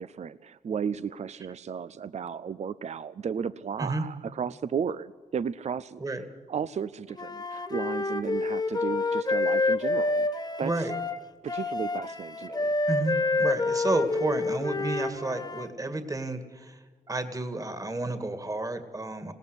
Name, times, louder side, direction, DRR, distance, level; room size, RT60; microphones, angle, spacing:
voice 1, 0.0-6.0 6.5-10.3 10.6-10.9 11.4-12.7, right 7 dB, 50° right, 15 dB, 0.5 m, -34 dB
Wind instrument woodwind instrument, 7.2-15.7, left 3 dB, 30° left, 1.6 m, -28 dB
voice 2, 10.6-10.9 12.9-16.8 17.1-19.3, right 2 dB, 25° right, 8 dB, 2.2 m, -31 dB
20.0 x 18.0 x 8.2 m, 1.4 s
cardioid pair, 75°, 14 cm